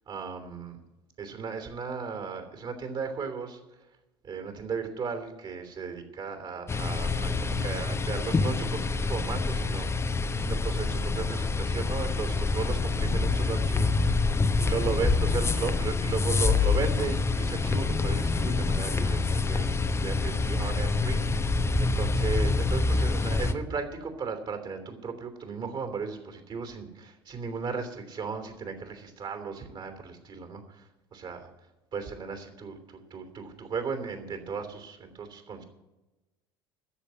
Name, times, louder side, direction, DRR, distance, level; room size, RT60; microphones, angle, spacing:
voice 1, 0.1-0.8 1.2-3.6 4.2-13.9 14.6-30.8 31.1-31.5 31.9-32.8 33.1-35.6, right 5 dB, 40° right, 7 dB, 3.2 m, -36 dB
sound 1, 6.7-23.5, left 3 dB, 20° left, 1.0 m, -26 dB
13.5 x 6.9 x 9.6 m, 1.0 s
hypercardioid pair, 70°, 13 cm